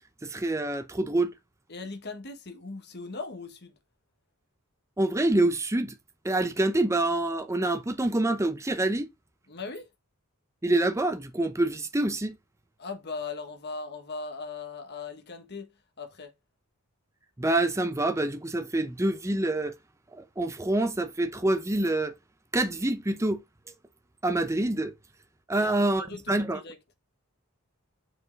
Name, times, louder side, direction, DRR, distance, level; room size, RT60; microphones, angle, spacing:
voice 1, 0.2-1.3 5.0-6.0 6.2-9.1 10.6-12.4 17.4-19.7 20.1-22.1 22.5-23.4 24.2-24.9 25.5-26.6, right 2 dB, 15° right, 0.6 m, -26 dB
voice 2, 1.7-3.7 9.5-9.9 12.8-15.7 16.0-16.3 25.5-26.8, left 4 dB, 50° left, 1.5 m, -39 dB
6.6 x 4.7 x 4.0 m
head